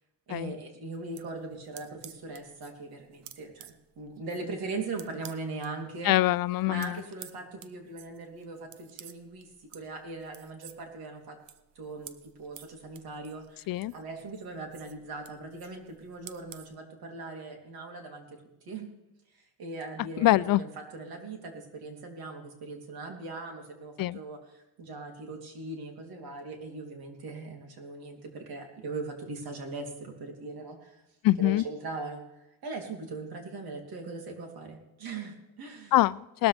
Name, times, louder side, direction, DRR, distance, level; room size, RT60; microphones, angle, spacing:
voice 1, 0.3-6.1 6.7-11.4 11.7-18.4 18.6-18.9 19.3-31.0 31.4-32.2 32.6-36.0, right 3 dB, 65° right, 2 dB, 3.4 m, -40 dB
sound 1, 0.9-5.7 6.0-16.7, right 11 dB, 80° right, 1.0 m, -52 dB
voice 2, 6.0-6.9 13.7-13.9 20.2-20.6 24.0-24.2 31.2-31.6 35.9-36.5, left 16 dB, 60° left, 20 dB, 0.5 m, -24 dB
19.5 x 13.0 x 3.5 m, 0.92 s
cardioid pair, 115°, 40 cm